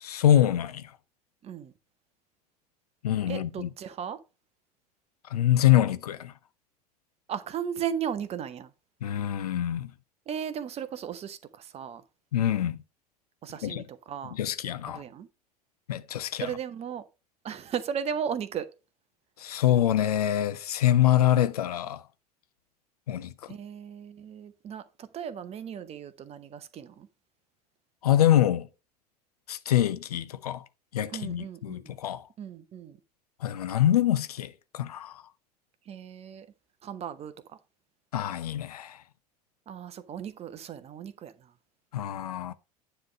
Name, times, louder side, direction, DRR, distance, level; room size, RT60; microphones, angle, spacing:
voice 1, 0.0-0.9 3.0-3.7 5.3-6.3 9.0-9.9 12.3-12.8 13.6-13.8 14.3-15.0 15.9-16.5 19.4-22.0 23.1-23.3 28.0-28.7 29.5-30.6 30.9-32.2 33.4-35.1 38.1-39.0 41.9-42.5, left 12 dB, 70° left, 0.6 m, -25 dB
voice 2, 1.4-1.7 3.3-4.2 7.3-8.7 10.3-12.0 13.4-14.4 14.9-15.3 16.4-17.0 17.4-18.7 23.5-27.1 31.1-31.9 32.4-33.0 35.9-36.5 36.8-37.6 39.7-41.5, right 8 dB, 30° right, 0.8 m, -36 dB
9.6 x 3.3 x 6.0 m
figure-of-eight pair, 75°, 20 cm